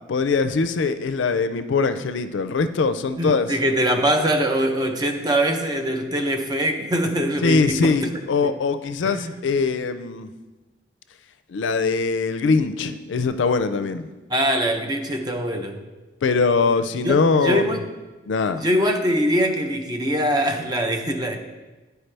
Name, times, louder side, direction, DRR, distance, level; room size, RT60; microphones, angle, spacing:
voice 1, 0.1-3.5 7.4-10.3 11.5-14.1 16.2-17.8 18.3-18.6, left 4 dB, 75° left, 11 dB, 0.4 m, -22 dB
voice 2, 3.1-7.9 8.4-8.5 9.0-9.3 14.3-15.8 17.0-17.8 18.6-21.4, equal, 20° right, 4 dB, 0.6 m, -23 dB
10.5 x 4.6 x 3.3 m, 1.2 s
head